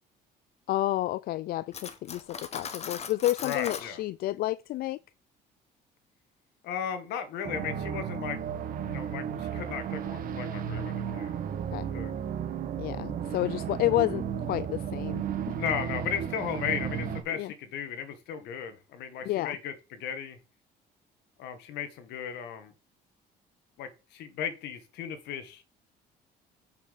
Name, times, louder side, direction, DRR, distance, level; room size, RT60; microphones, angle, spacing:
voice 1, 0.7-5.0 11.7-11.9 12.8-15.6 17.3-17.5 19.3-19.6, left 15 dB, 65° left, 0.4 m, -30 dB
Cutlery silverware, 1.7-3.9, left 6 dB, 40° left, 1.2 m, -39 dB
voice 2, 3.4-4.0 6.6-8.4 8.9-11.3 11.9-12.1 15.6-20.4 21.4-22.7 23.8-25.6, left 8 dB, 80° left, 1.8 m, -35 dB
sound 1, 7.4-17.2, right 8 dB, 55° right, 1.6 m, -34 dB
5.7 x 5.7 x 6.6 m
cardioid pair, 110°, 17 cm